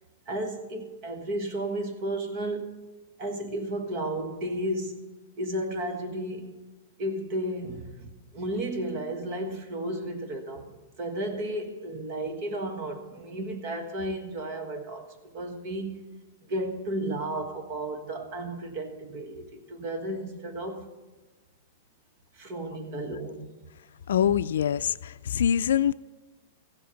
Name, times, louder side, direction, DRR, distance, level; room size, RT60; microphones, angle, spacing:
voice 1, 0.3-2.8 3.2-6.6 7.0-16.1 16.5-20.9 22.4-23.5, right 1 dB, 30° right, 1.4 m, -33 dB
voice 2, 24.1-25.9, left 9 dB, 80° left, 0.4 m, -24 dB
15.5 x 7.8 x 5.7 m
supercardioid pair, 170°, 0 cm